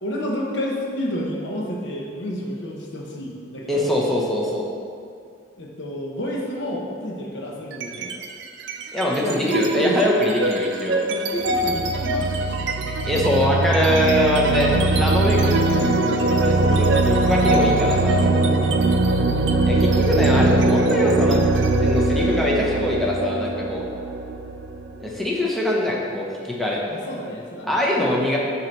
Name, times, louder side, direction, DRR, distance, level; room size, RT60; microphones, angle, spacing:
voice 1, 0.0-3.9 5.6-8.2 9.2-10.1 11.1-12.7 15.2-16.8 18.6-19.0 26.9-27.8, equal, 60° left, -1 dB, 0.9 m, -30 dB
voice 2, 3.7-4.6 8.9-11.0 13.0-15.4 16.4-18.5 19.6-23.8 25.0-26.8 27.7-28.4, left 1 dB, ahead, -4 dB, 0.7 m, -23 dB
sound 1, 7.7-8.2 8.6-25.2, right 2 dB, 65° right, 0.4 m, -21 dB
7.4 x 2.9 x 5.2 m, 2.3 s
head